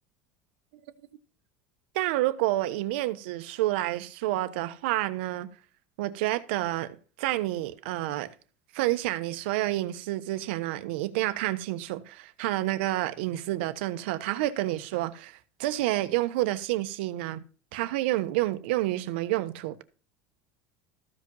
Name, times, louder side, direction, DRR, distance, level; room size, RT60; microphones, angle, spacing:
voice 1, 1.9-5.5 6.0-8.3 8.7-17.4 17.7-19.8, right 16 dB, 80° right, 1.0 m, -29 dB
14.0 x 5.2 x 5.4 m
cardioid pair, 155°, 6 cm